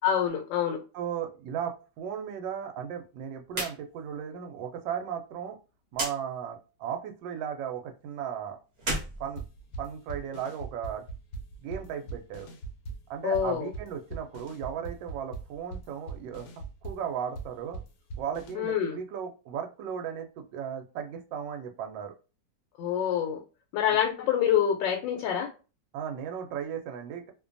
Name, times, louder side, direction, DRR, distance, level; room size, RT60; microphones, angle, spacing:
voice 1, 0.0-0.8 13.2-13.7 18.6-19.0 22.8-23.4 23.7-25.5, left 9 dB, 90° left, 2 dB, 1.3 m, -26 dB
voice 2, 0.9-5.6 5.9-8.6 9.2-9.4 9.8-11.0 11.6-12.5 13.1-16.5 16.8-17.8 18.2-22.1 25.9-27.3, right 8 dB, 85° right, 5 dB, 1.2 m, -36 dB
sound 1, 3.5-3.8 4.1-4.2 5.9-6.2 8.7-10.0, right 2 dB, 45° right, 1.0 m, -33 dB
sound 2, 9.4-18.5, right 3 dB, 70° left, 0.9 m, -40 dB
3.0 x 2.2 x 2.5 m, 0.33 s
omnidirectional pair, 1.9 m